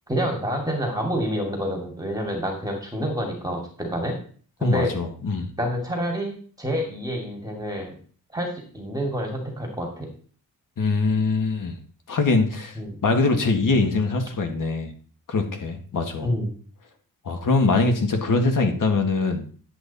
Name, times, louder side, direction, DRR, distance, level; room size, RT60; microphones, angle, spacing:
voice 1, 0.1-4.1 4.6-4.9 5.6-8.0 8.3-10.1 12.8-13.0 16.2-16.5, equal, 10° right, 0 dB, 2.4 m, -28 dB
voice 2, 4.6-5.5 10.8-11.8 12.1-12.7 13.0-14.9 15.3-16.3 17.3-19.4, left 3 dB, 65° left, 4 dB, 2.1 m, -22 dB
11.0 x 8.1 x 4.2 m, 0.43 s
wide cardioid pair, 155°, 35 cm